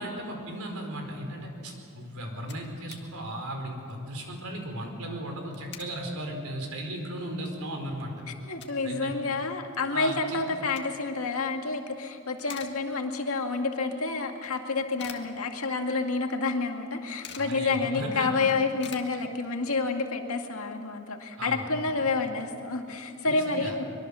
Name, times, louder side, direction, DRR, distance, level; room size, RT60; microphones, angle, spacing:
voice 1, 0.0-8.1 8.8-9.1 9.9-10.4 17.4-18.3 21.4-21.7 23.3-23.7, right 1 dB, 85° right, 3 dB, 4.6 m, -36 dB
sound 1, 2.5-3.1 3.4-3.5 3.8-4.1 5.3-6.0 6.5-6.6 7.1-7.2 7.5-8.9 9.3-9.4 10.4-11.2 11.7-12.0 12.3-13.3 13.6-13.7 14.4-15.9 16.2-16.3 16.5-17.6 18.0-18.1 18.3-19.7, left 8 dB, 55° left, 1.9 m, -47 dB
voice 2, 8.3-23.8, left 3 dB, 70° left, 3 dB, 2.1 m, -29 dB
23.5 x 22.5 x 7.0 m, 2.6 s
head